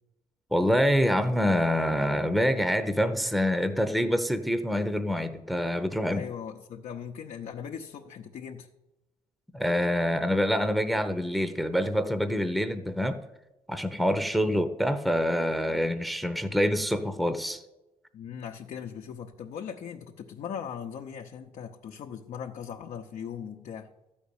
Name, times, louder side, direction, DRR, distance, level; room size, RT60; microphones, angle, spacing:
voice 1, 0.5-6.2 9.5-13.2 13.7-17.6, equal, ahead, 10 dB, 0.8 m, -26 dB
voice 2, 6.1-8.7 18.1-23.9, left 7 dB, 65° left, 1 dB, 0.9 m, -39 dB
12.5 x 5.3 x 8.6 m, 0.97 s
cardioid pair, 95°, 13 cm